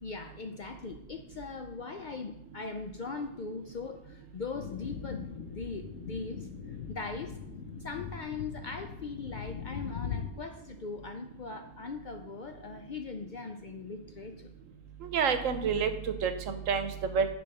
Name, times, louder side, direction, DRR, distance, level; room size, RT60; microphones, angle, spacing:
voice 1, 0.0-7.4 7.8-14.5, left 4 dB, 55° left, 6 dB, 0.5 m, -40 dB
sound 1, 4.5-10.3, left 7 dB, 80° left, 1.1 m, -40 dB
voice 2, 15.0-17.3, right 6 dB, 85° right, 9 dB, 1.2 m, -29 dB
10.0 x 3.4 x 6.6 m, 0.92 s
omnidirectional pair, 1.3 m